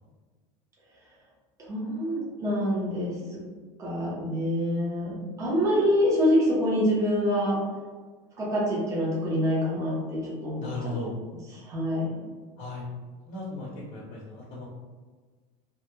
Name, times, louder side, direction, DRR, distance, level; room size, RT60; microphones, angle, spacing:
voice 1, 1.7-3.4 3.8-7.6 8.4-10.7 11.5-12.2, equal, 20° right, -6 dB, 0.6 m, -26 dB
voice 2, 10.6-11.2 12.6-12.8 13.3-14.7, left 2 dB, 40° left, -6 dB, 0.6 m, -36 dB
2.2 x 2.1 x 3.0 m, 1.4 s
cardioid pair, 160°, 16 cm